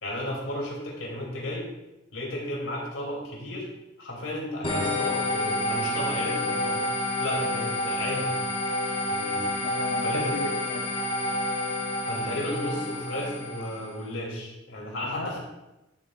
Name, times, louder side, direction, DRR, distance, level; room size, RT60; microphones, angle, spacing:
voice 1, 0.0-1.7 2.1-3.7 4.0-6.8 7.2-8.4 9.1-9.5 10.0-10.3 12.1-15.4, left 1 dB, 85° left, -3 dB, 3.2 m, -33 dB
sound 1, 4.6-14.0, left 1 dB, 25° left, 1.0 m, -29 dB
voice 2, 9.5-10.9 15.0-15.4, left 1 dB, 70° left, 2 dB, 0.8 m, -36 dB
12.0 x 7.9 x 2.6 m, 0.97 s
head